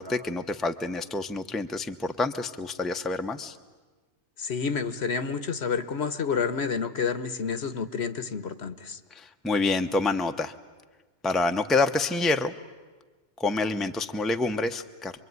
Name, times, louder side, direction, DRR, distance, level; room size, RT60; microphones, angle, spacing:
voice 1, 0.0-3.6 9.1-10.5 11.2-12.5 13.4-15.1, left 3 dB, ahead, 7 dB, 0.7 m, -27 dB
voice 2, 4.4-9.0, left 6 dB, 60° left, 12 dB, 1.4 m, -29 dB
26.0 x 22.5 x 9.5 m, 1.3 s
omnidirectional pair, 1.3 m